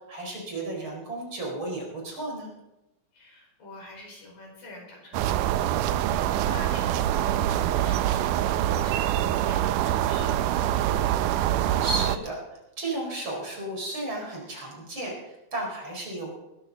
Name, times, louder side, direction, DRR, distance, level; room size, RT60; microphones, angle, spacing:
voice 1, 0.1-2.5 11.8-12.4 12.8-16.4, right 2 dB, 35° right, -1 dB, 5.1 m, -33 dB
voice 2, 3.1-11.5, left 1 dB, 90° left, -2 dB, 6.8 m, -46 dB
sound 1, 5.1-12.2, right 12 dB, 80° right, 2.1 m, -25 dB
20.5 x 13.0 x 4.0 m, 0.98 s
omnidirectional pair, 3.9 m